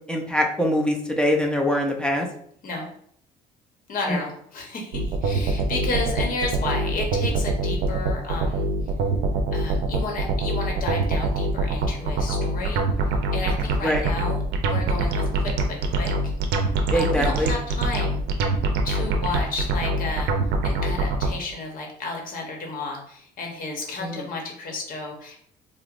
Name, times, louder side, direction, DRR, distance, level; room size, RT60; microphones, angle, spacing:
voice 1, 0.1-2.3 4.1-4.2 13.8-14.0 16.9-17.5 24.0-24.3, equal, 5° left, 1 dB, 0.5 m, -23 dB
voice 2, 3.9-8.7 9.5-12.8 13.3-16.1 16.9-18.2 18.8-20.3 20.6-25.4, left 3 dB, 55° left, 1 dB, 1.0 m, -32 dB
sound 1, 4.9-21.3, right 2 dB, 90° right, 0.5 m, -24 dB
4.4 x 2.0 x 2.5 m, 0.66 s
cardioid pair, 110°, 17 cm